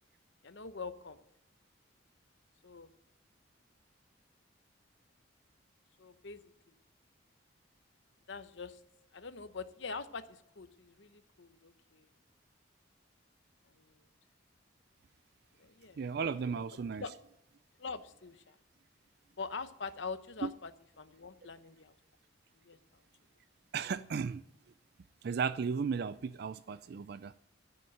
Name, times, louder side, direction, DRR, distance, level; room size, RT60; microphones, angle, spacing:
voice 1, 0.4-1.2 2.6-2.9 6.0-6.4 8.3-8.8 9.1-12.1 13.8-14.0 15.6-16.0 17.0-17.1 17.8-18.5 19.4-20.7 21.0-21.9 22.6-23.0, left 4 dB, 65° left, 0.9 m, -44 dB
voice 2, 16.0-17.0 20.4-20.5 23.7-24.4 25.2-27.3, right 5 dB, 55° right, 0.3 m, -35 dB
13.5 x 6.4 x 7.7 m
head